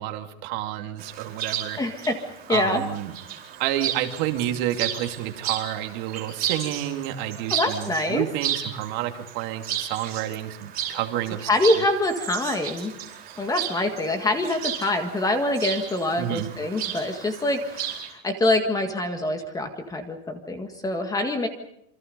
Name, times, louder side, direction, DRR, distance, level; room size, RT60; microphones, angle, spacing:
voice 1, 0.0-1.8 2.5-3.1 3.6-11.7 13.1-13.2 16.2-16.5, right 13 dB, 55° right, 5 dB, 2.6 m, -29 dB
Chirp tweet, 1.0-18.1, right 9 dB, 30° right, 4.8 m, -34 dB
voice 2, 1.8-2.2 2.5-2.8 7.5-8.2 11.5-12.9 13.4-21.5, left 2 dB, 10° left, 6 dB, 1.8 m, -25 dB
28.0 x 25.5 x 5.4 m, 0.78 s
supercardioid pair, 160°, 33 cm